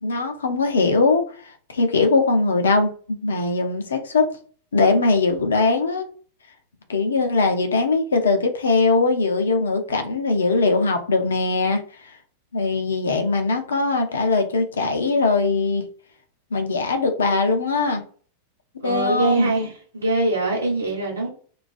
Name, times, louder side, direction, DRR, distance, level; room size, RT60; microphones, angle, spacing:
voice 1, 0.0-1.2 1.7-4.3 4.7-6.0 6.9-11.8 12.5-15.8 16.5-18.0 18.8-19.5, left 3 dB, 70° left, 0.5 m, -21 dB
voice 2, 18.8-21.3, right 2 dB, 70° right, 1.0 m, -23 dB
2.3 x 2.3 x 2.4 m
figure-of-eight pair, 90°, 0 cm